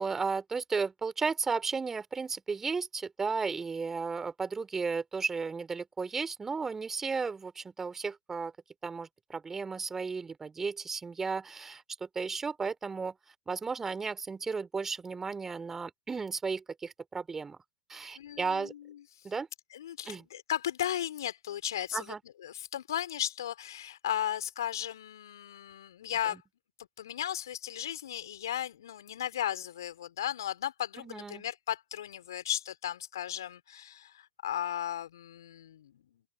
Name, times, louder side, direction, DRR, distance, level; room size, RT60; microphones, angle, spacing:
voice 1, 0.0-8.5 8.8-17.6 17.9-18.7 19.2-19.5 20.1-20.2 21.9-22.2 31.0-31.4, right 5 dB, 15° right, 3.3 m, -34 dB
voice 2, 18.2-19.3 19.7-22.1 22.4-26.4 27.0-36.2, left 11 dB, 65° left, 3.6 m, -36 dB
open air
figure-of-eight pair, 95°, 2 cm